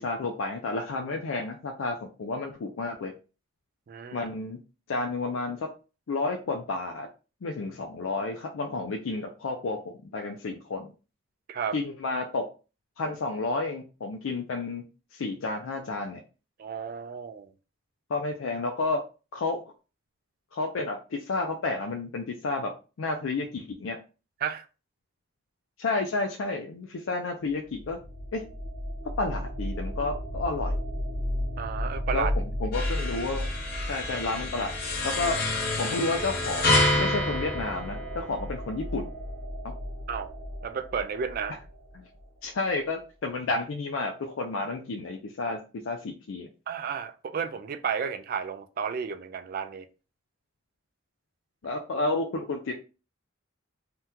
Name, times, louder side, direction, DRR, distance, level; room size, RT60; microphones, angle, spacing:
voice 1, 0.0-3.1 4.1-4.6 4.9-5.7 6.1-7.1 7.4-10.9 11.7-12.5 13.0-14.8 15.1-16.2 18.1-19.0 19.3-19.6 20.5-22.7 23.0-24.0 25.8-28.0 28.3-28.4 29.2-30.8 32.1-32.3 32.6-33.5 33.9-34.7 35.0-35.4 35.8-39.1 39.6-39.7 41.9-42.0 42.4-46.5 51.6-52.7, left 3 dB, 85° left, 0.4 m, -31 dB
voice 2, 3.9-4.3 11.5-11.8 16.6-17.5 24.4-24.6 31.6-32.3 40.1-40.3 40.6-41.6 46.7-49.9, right 6 dB, 50° right, 0.3 m, -32 dB
sound 1, 27.5-42.3, equal, 90° right, 1.2 m, -35 dB
sound 2, 32.7-38.5, left 2 dB, 50° left, 0.8 m, -28 dB
2.8 x 2.2 x 3.6 m
head